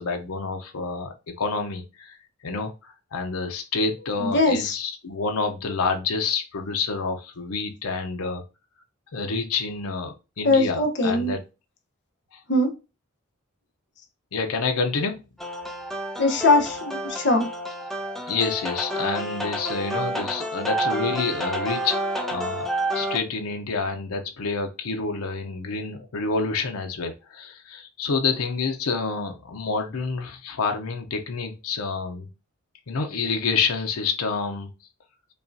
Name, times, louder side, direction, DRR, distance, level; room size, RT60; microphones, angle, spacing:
voice 1, 0.0-2.2 2.4-8.4 9.1-11.4 12.3-12.4 14.3-15.2 18.3-22.0 22.3-32.3 32.9-34.7, left 4 dB, 90° left, 0.7 m, -28 dB
voice 2, 4.2-4.8 10.4-11.3 12.5-12.7 16.2-17.5, left 2 dB, 55° left, 0.9 m, -21 dB
sound 1, 15.4-23.2, right 1 dB, ahead, 0.5 m, -29 dB
5.4 x 2.4 x 2.6 m
head